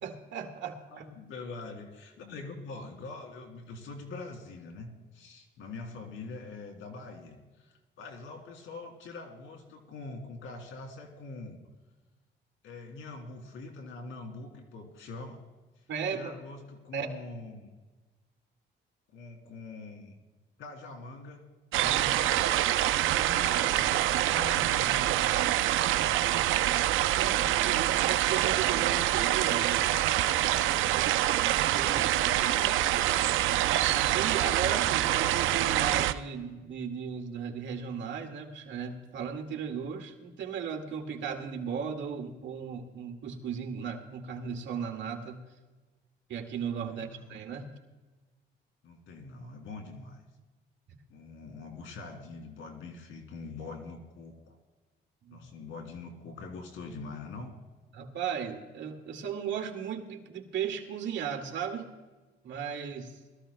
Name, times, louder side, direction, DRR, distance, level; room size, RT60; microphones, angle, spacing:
voice 1, 0.0-1.0 15.9-16.3 16.9-17.1 27.1-30.0 31.6-32.1 33.9-45.4 46.3-47.7 50.9-51.0 55.2-55.4 57.9-61.9 62.4-63.2, right 7 dB, 70° right, 3 dB, 1.9 m, -36 dB
voice 2, 0.9-11.6 12.6-15.4 15.8-15.9 16.1-17.7 19.1-20.2 20.6-21.4 21.8-22.4 23.3-25.4 25.9-26.5 31.9-32.8 46.9-47.2 48.8-50.2 51.1-54.6 55.3-57.5, left 3 dB, 80° left, 3 dB, 2.8 m, -44 dB
sound 1, 21.7-36.1, right 13 dB, 85° right, 0.5 m, -26 dB
21.0 x 14.0 x 2.2 m, 1.2 s
cardioid pair, 90°, 20 cm